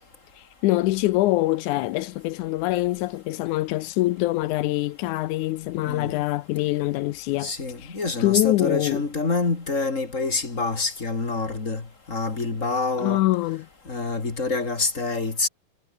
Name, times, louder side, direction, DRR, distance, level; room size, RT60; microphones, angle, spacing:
voice 1, 0.4-7.5 7.8-9.0 13.0-13.7, left 18 dB, 85° left, 1.7 m, -24 dB
voice 2, 7.4-11.8 12.1-13.2 13.9-15.5, left 3 dB, 25° left, 2.4 m, -26 dB
omnidirectional pair, 4.3 m